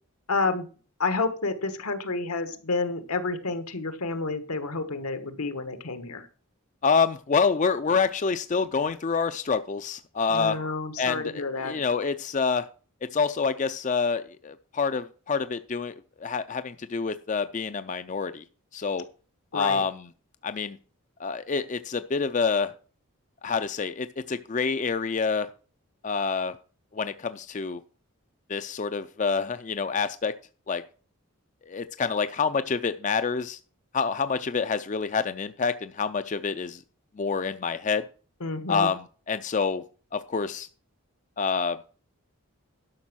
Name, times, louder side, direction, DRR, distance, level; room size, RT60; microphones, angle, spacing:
voice 1, 0.3-0.7 1.0-6.3 10.3-11.8 19.5-19.8 38.4-38.9, left 3 dB, 80° left, 10 dB, 1.4 m, -29 dB
voice 2, 6.8-10.6 11.0-12.7 13.1-15.9 16.2-18.4 18.7-19.1 19.5-20.1 20.4-20.8 21.2-22.7 23.4-25.5 26.0-26.5 26.9-27.8 28.5-30.3 30.7-30.8 31.7-33.6 33.9-36.8 37.2-38.0 38.7-39.8 40.1-40.7 41.4-41.8, left 5 dB, 35° left, 11 dB, 0.4 m, -27 dB
11.5 x 6.1 x 6.2 m, 0.39 s
head